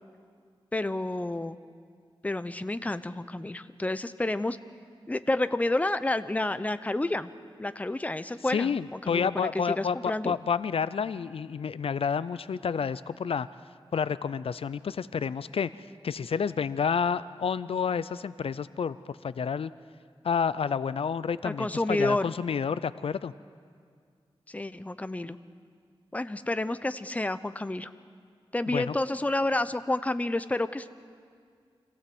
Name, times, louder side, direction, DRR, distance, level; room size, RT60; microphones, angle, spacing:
voice 1, 0.7-1.6 2.2-4.6 5.1-7.3 7.6-9.5 9.8-10.4 21.4-22.3 24.5-25.4 26.1-27.9 28.5-30.9, left 2 dB, 15° left, 13 dB, 0.7 m, -30 dB
voice 2, 8.5-13.5 13.9-15.7 16.0-19.7 20.2-23.3 28.7-28.9, left 6 dB, 75° left, 16 dB, 0.5 m, -29 dB
26.0 x 17.0 x 7.8 m, 2.1 s
wide cardioid pair, 100°, 10 cm